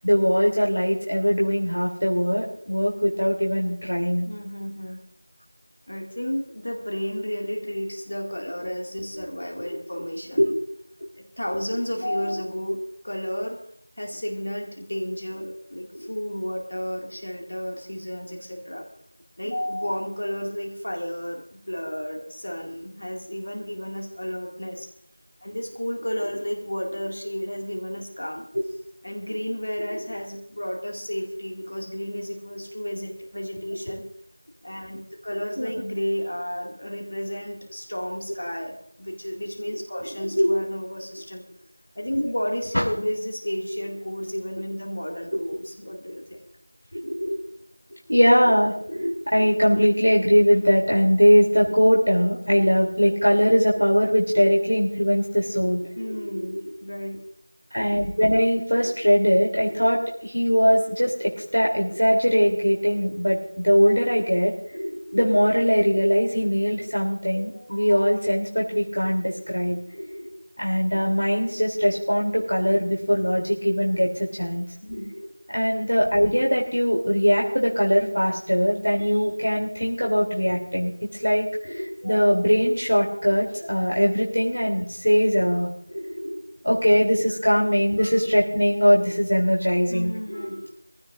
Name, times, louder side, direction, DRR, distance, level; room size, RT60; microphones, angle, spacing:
voice 1, 0.0-4.2 9.6-9.7 10.4-10.6 15.9-16.1 29.9-30.0 33.9-34.0 35.6-35.7 40.2-40.6 42.7-42.8 46.9-47.4 48.1-56.6 57.7-70.3 70.6-74.6 75.5-90.6, equal, 85° left, -2 dB, 3.2 m, -21 dB
voice 2, 4.3-5.0 5.9-10.5 11.4-12.8 13.0-13.6 14.0-18.8 19.4-24.9 25.4-28.5 29.0-34.1 34.6-35.0 35.2-41.4 42.0-46.4 56.0-57.2 74.8-75.1 89.9-90.6, equal, 40° left, 0 dB, 2.2 m, -32 dB
24.0 x 15.5 x 2.6 m, 0.69 s
figure-of-eight pair, 175°, 0 cm